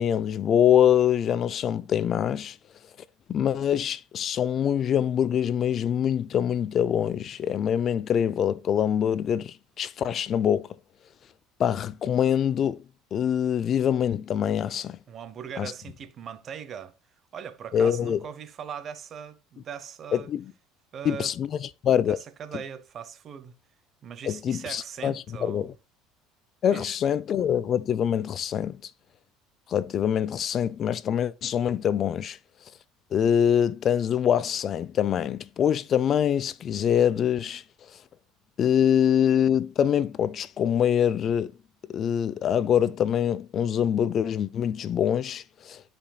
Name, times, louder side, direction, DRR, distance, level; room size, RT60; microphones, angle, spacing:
voice 1, 0.0-2.6 3.3-10.7 11.6-12.8 13.1-15.0 15.6-15.7 17.7-18.2 20.1-20.5 21.0-22.2 24.2-25.7 26.6-28.9 29.7-32.4 33.1-37.6 38.6-41.5 41.9-45.8, left 9 dB, 45° left, 0.4 m, -24 dB
voice 2, 15.1-16.9 17.3-20.3 20.9-21.3 22.1-23.5 24.0-25.7 26.7-27.0, right 8 dB, 45° right, 0.9 m, -40 dB
13.0 x 5.1 x 2.3 m
supercardioid pair, 95°, 0 cm